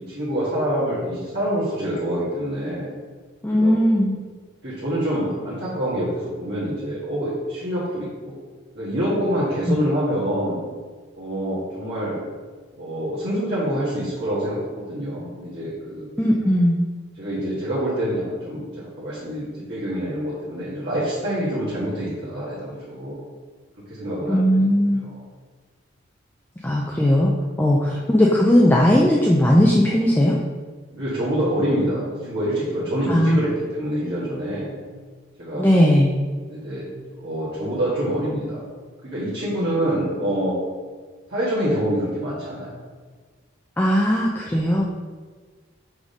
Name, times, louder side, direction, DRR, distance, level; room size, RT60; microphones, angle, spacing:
voice 1, 0.0-2.9 3.5-3.7 4.6-8.3 8.8-10.6 11.2-12.2 12.8-16.1 17.2-23.2 23.9-25.2 27.9-28.2 30.9-34.8 35.4-35.7 36.5-36.8 37.1-38.6 39.0-40.5 41.3-42.8, equal, 50° right, -10 dB, 1.7 m, -26 dB
voice 2, 3.4-4.2 9.7-9.8 16.2-16.8 24.3-25.0 26.6-27.3 27.6-30.4 33.1-33.4 35.5-36.1 43.8-44.9, equal, 10° left, -2 dB, 0.4 m, -18 dB
6.2 x 3.7 x 5.0 m, 1.5 s
head